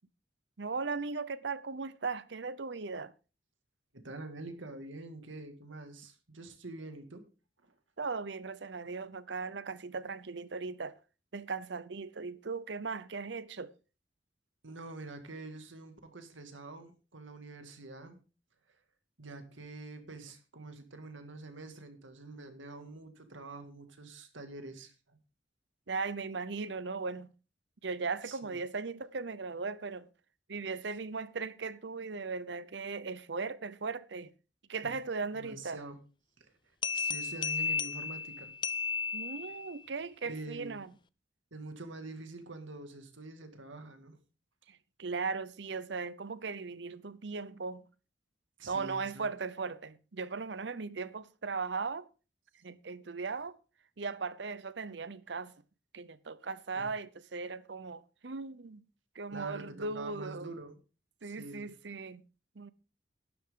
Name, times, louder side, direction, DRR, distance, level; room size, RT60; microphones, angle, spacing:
voice 1, 0.6-3.1 8.0-11.0 11.3-13.7 25.9-27.3 27.8-30.1 30.5-34.3 34.7-35.8 39.1-40.9 44.7-47.8 48.7-52.1 52.6-53.6 54.0-55.5 55.9-58.8 59.1-60.5 61.2-62.2 62.6-62.7, right 4 dB, 65° right, 0.7 m, -38 dB
voice 2, 3.9-7.2 7.6-7.7 14.6-18.2 19.2-25.2 28.2-28.5 34.8-34.9 35.3-36.0 36.4-36.5 36.9-38.5 40.2-40.9 41.5-44.2 48.6-49.2 56.7-56.9 59.3-60.8 61.2-61.7, right 2 dB, 90° right, 2.2 m, -46 dB
sound 1, 36.8-39.8, left 5 dB, 25° left, 0.5 m, -34 dB
12.0 x 12.0 x 3.8 m
head